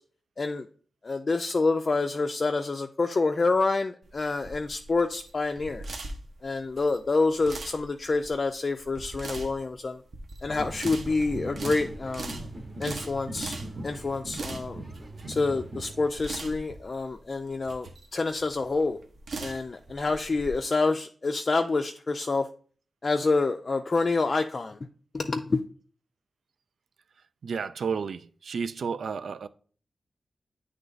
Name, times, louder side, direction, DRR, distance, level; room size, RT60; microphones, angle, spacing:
voice 1, 1.0-5.8 6.4-10.0 10.4-12.5 12.8-13.6 13.8-14.8 15.3-19.0 19.4-22.4 23.0-24.8 25.1-25.6, left 3 dB, 40° left, 0.4 m, -27 dB
sound 1, 4.0-20.5, right 3 dB, 65° right, 0.9 m, -41 dB
sound 2, 10.5-16.1, right 1 dB, 30° right, 1.0 m, -40 dB
voice 2, 27.4-29.5, right 5 dB, 80° right, 0.4 m, -32 dB
9.2 x 3.2 x 3.9 m
wide cardioid pair, 155°, 0 cm